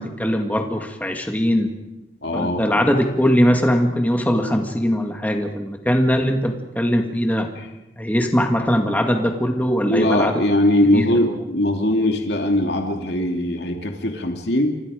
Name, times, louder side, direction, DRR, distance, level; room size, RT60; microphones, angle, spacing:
voice 1, 0.0-1.7 2.3-7.5 8.0-10.3 10.9-11.3, equal, 10° left, 4 dB, 1.9 m, -20 dB
voice 2, 2.2-2.6 7.6-7.7 9.9-14.8, left 1 dB, 65° left, 3 dB, 2.7 m, -20 dB
29.5 x 26.0 x 5.0 m, 0.99 s
head